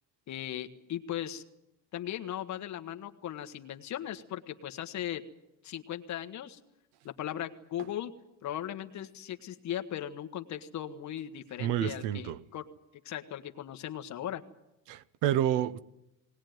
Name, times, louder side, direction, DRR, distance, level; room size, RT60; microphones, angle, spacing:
voice 1, 0.3-1.4 1.9-5.2 5.6-6.6 7.0-8.1 8.4-12.7 13.0-14.4, left 11 dB, 40° left, 1.3 m, -38 dB
voice 2, 11.6-12.4 14.9-15.8, right 11 dB, 75° right, 1.0 m, -29 dB
20.0 x 19.5 x 9.3 m
cardioid pair, 170°, 42 cm